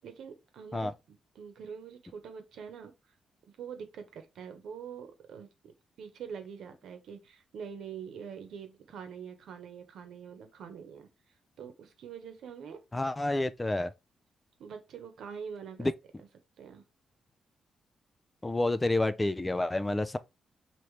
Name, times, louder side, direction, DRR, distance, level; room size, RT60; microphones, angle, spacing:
voice 1, 0.0-2.9 3.5-5.7 6.0-11.1 11.6-12.8 14.6-15.9 16.2-16.3 16.6-16.8, right 7 dB, 80° right, 1.0 m, -44 dB
voice 2, 12.9-13.9 15.8-15.9 18.4-20.2, left 2 dB, 15° left, 0.3 m, -29 dB
4.8 x 2.9 x 3.2 m
cardioid pair, 110°, 0 cm